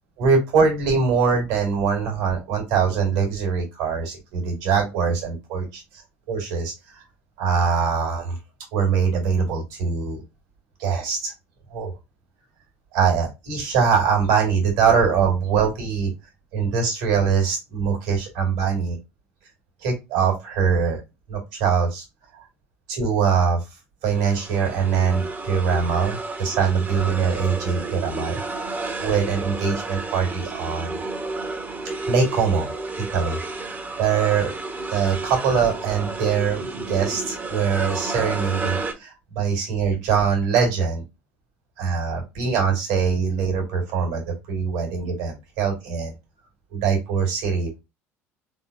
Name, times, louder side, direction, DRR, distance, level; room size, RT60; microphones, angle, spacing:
voice 1, 0.2-5.8 6.3-7.0 7.4-8.4 8.7-10.2 10.8-11.3 11.7-11.9 12.9-16.1 16.5-19.0 19.8-21.0 21.3-22.0 22.9-23.6 24.0-28.4 29.0-31.0 32.1-32.7 33.0-33.4 33.6-34.5 34.9-41.0 41.8-44.2 44.5-46.1 46.7-47.8, right 6 dB, 65° right, 1 dB, 2.1 m, -22 dB
sound 1, 24.0-38.9, right 3 dB, 25° right, 1.1 m, -31 dB
4.0 x 3.6 x 2.6 m, 0.23 s
figure-of-eight pair, 65°, 7 cm